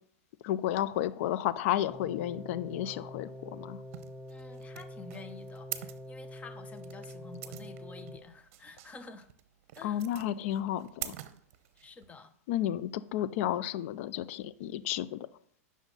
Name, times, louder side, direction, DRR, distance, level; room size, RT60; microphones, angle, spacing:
voice 1, 0.4-3.8 9.8-11.1 12.5-15.3, left 12 dB, 55° left, 16 dB, 0.5 m, -32 dB
sound 1, 1.9-8.2, left 1 dB, 5° right, 3.2 m, -46 dB
sound 2, 3.9-12.1, right 13 dB, 55° right, 0.8 m, -45 dB
voice 2, 4.3-9.3 9.8-10.0 11.8-12.3, left 4 dB, 15° left, 10 dB, 0.8 m, -49 dB
9.8 x 6.3 x 3.9 m, 0.63 s
hypercardioid pair, 125°, 8 cm